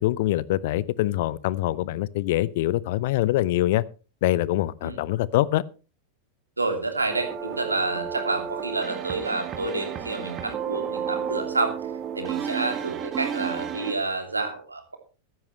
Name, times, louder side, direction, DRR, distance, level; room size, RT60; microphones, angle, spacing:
voice 1, 0.0-3.8 4.2-5.6, left 15 dB, 50° left, 0.6 m, -24 dB
voice 2, 6.6-11.8 12.1-14.9, right 3 dB, 80° right, 2.8 m, -29 dB
sound 1, 7.1-14.0, right 8 dB, 25° right, 1.8 m, -32 dB
15.5 x 13.5 x 3.2 m
figure-of-eight pair, 90°, 0 cm